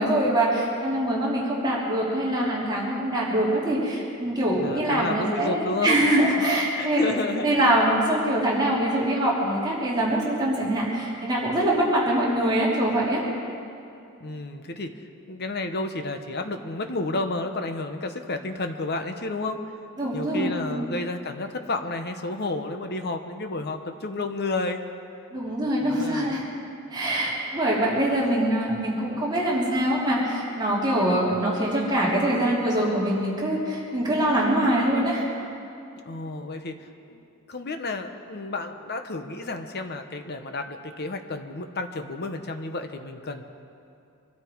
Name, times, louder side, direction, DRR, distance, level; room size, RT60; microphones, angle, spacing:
voice 1, 0.0-13.2 20.0-20.8 25.3-26.4 26.9-35.2, right 1 dB, 20° right, -6 dB, 3.2 m, -24 dB
voice 2, 4.5-6.0 6.4-6.5 6.7-7.6 14.2-15.0 15.3-19.6 20.1-24.8 25.8-26.4 36.0-37.2 37.5-43.4, left 2 dB, 50° left, 6 dB, 1.0 m, -31 dB
24.0 x 13.0 x 4.7 m, 2.6 s
head